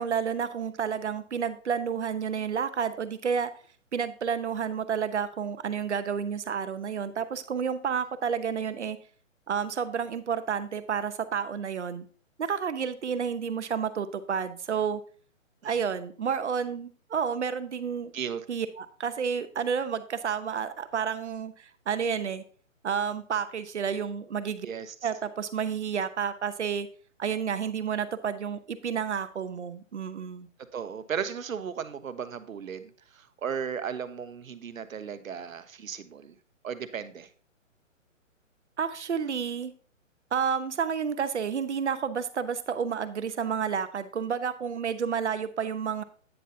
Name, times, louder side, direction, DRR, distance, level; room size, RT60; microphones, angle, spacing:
voice 1, 0.0-3.5 3.9-9.0 9.5-12.0 12.4-15.0 15.6-18.1 18.5-22.4 22.8-24.7 25.0-26.9 27.2-30.5 38.8-39.7 40.3-46.0, right 7 dB, 60° right, 11 dB, 1.0 m, -30 dB
voice 2, 18.1-18.4 24.6-25.1 30.7-36.3 36.6-37.3, right 7 dB, 85° right, 11 dB, 1.2 m, -35 dB
9.3 x 7.7 x 2.8 m, 0.42 s
hypercardioid pair, 175°, 39 cm